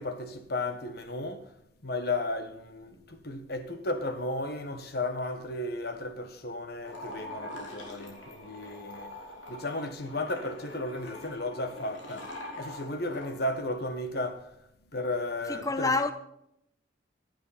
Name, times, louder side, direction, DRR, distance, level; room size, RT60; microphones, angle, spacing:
voice 1, 0.0-1.5 1.8-9.1 9.5-12.3 12.6-14.5 14.9-16.0, left 2 dB, 55° left, 1.4 m, -34 dB
sound 1, 6.8-13.3, left 1 dB, 75° left, 3.7 m, -44 dB
voice 2, 15.5-16.1, left 3 dB, 20° left, 0.8 m, -27 dB
16.0 x 8.7 x 4.2 m
head